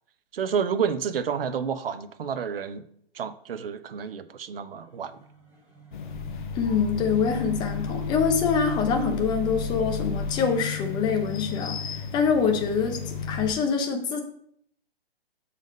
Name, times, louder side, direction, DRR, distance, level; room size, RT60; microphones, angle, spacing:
voice 1, 0.3-2.8 3.1-5.2, right 7 dB, 65° right, 12 dB, 0.7 m, -29 dB
sound 1, 5.0-10.3, equal, 5° right, 2.1 m, -36 dB
sound 2, 5.9-13.5, left 7 dB, 50° left, 0.8 m, -34 dB
voice 2, 6.5-14.2, left 6 dB, 15° left, 5 dB, 0.7 m, -25 dB
7.1 x 4.1 x 5.2 m, 0.69 s
figure-of-eight pair, 135°, 31 cm